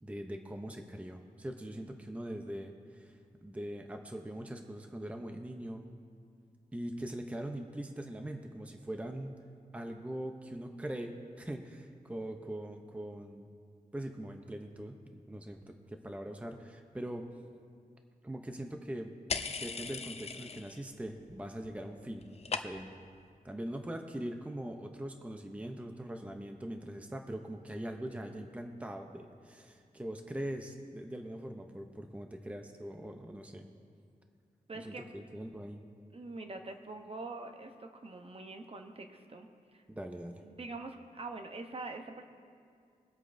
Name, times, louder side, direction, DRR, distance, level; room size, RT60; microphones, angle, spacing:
voice 1, 0.0-5.8 6.7-9.4 9.7-13.5 13.9-17.2 18.2-19.1 19.6-23.0 23.4-33.7 34.7-35.8 39.9-40.4, right 1 dB, 10° right, 5 dB, 0.6 m, -42 dB
sound 1, 19.3-20.9 21.2-21.7 22.0-23.1, left 5 dB, 45° left, 0.5 m, -39 dB
voice 2, 34.7-35.1 36.1-39.8 40.4-42.2, right 3 dB, 40° right, 5 dB, 0.8 m, -44 dB
23.0 x 8.1 x 2.6 m, 2.3 s
wide cardioid pair, 130°, 15 cm